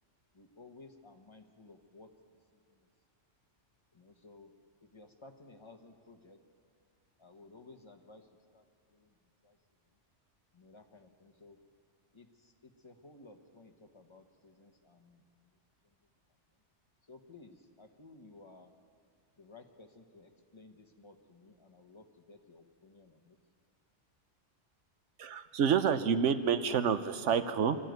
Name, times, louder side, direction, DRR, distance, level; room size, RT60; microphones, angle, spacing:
voice 1, 0.3-2.1 2.5-2.9 3.9-4.5 4.8-6.4 7.2-8.3 8.5-8.6 8.9-9.2 9.4-9.6 10.5-11.6 12.1-15.6 15.8-15.9 17.1-18.7 19.4-23.4, left 3 dB, 25° left, 5 dB, 1.2 m, -56 dB
voice 2, 25.2-27.8, right 7 dB, 85° right, 11 dB, 1.2 m, -28 dB
23.0 x 13.0 x 9.3 m, 2.4 s
omnidirectional pair, 1.2 m